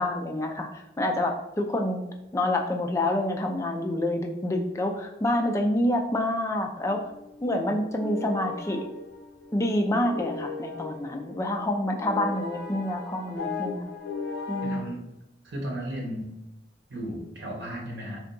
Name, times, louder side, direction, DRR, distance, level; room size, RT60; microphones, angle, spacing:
voice 1, 0.0-2.0 2.3-7.0 7.4-8.8 9.5-13.8 14.5-14.8, left 1 dB, 15° left, 2 dB, 0.3 m, -27 dB
sound 1, 6.8-14.8, left 4 dB, 70° left, 0.7 m, -38 dB
voice 2, 14.6-15.0 15.4-16.3 16.9-18.2, right 1 dB, 65° right, -2 dB, 1.0 m, -34 dB
2.7 x 2.3 x 3.8 m, 0.90 s
head